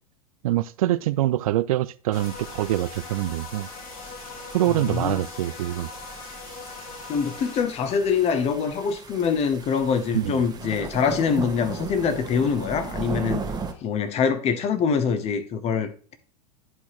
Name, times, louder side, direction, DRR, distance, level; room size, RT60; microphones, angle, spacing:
voice 1, 0.4-3.7 4.5-5.9 10.1-10.4, right 14 dB, 65° right, 0.4 m, -24 dB
sound 1, 2.1-7.6, left 5 dB, 65° left, 1.3 m, -40 dB
sound 2, 2.1-13.7, right 4 dB, 20° right, 1.2 m, -38 dB
voice 2, 4.7-5.2 7.1-13.4 13.8-16.2, left 6 dB, 35° left, 1.0 m, -24 dB
10.5 x 4.1 x 3.1 m
hypercardioid pair, 95°, 19 cm